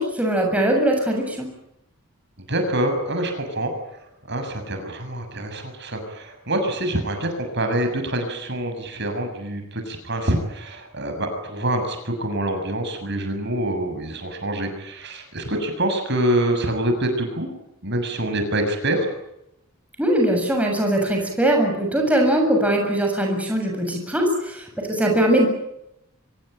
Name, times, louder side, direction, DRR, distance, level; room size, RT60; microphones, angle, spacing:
voice 1, 0.0-1.5 20.0-25.5, right 1 dB, 5° right, 1 dB, 7.3 m, -21 dB
voice 2, 2.5-17.5 17.8-19.1, right 1 dB, 55° right, 5 dB, 6.9 m, -26 dB
25.5 x 22.5 x 9.2 m, 0.82 s
head